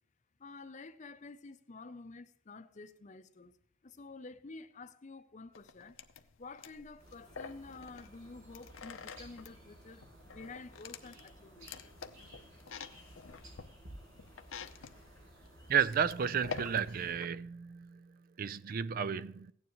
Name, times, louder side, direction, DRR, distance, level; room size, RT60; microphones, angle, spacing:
voice 1, 0.4-3.5 3.8-6.0 6.4-11.7, left 3 dB, 35° left, 0.6 m, -50 dB
sound 1, 5.5-17.3, left 5 dB, 75° left, 0.7 m, -48 dB
sound 2, 7.0-17.1, right 1 dB, 85° right, 5.5 m, -56 dB
voice 2, 15.7-19.5, right 7 dB, 45° right, 0.4 m, -33 dB
15.5 x 9.5 x 3.0 m
head